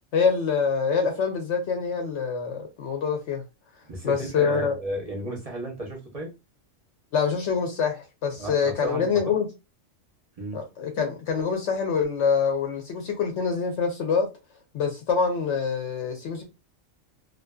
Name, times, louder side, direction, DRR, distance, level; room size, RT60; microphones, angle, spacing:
voice 1, 0.1-3.4 4.0-4.7 7.1-9.5 10.5-14.3 14.7-16.4, left 5 dB, 70° left, 0.8 m, -25 dB
voice 2, 3.9-6.3 8.4-9.3 10.4-10.6, right 1 dB, 40° right, 0.6 m, -34 dB
2.5 x 2.2 x 2.2 m
omnidirectional pair, 1.3 m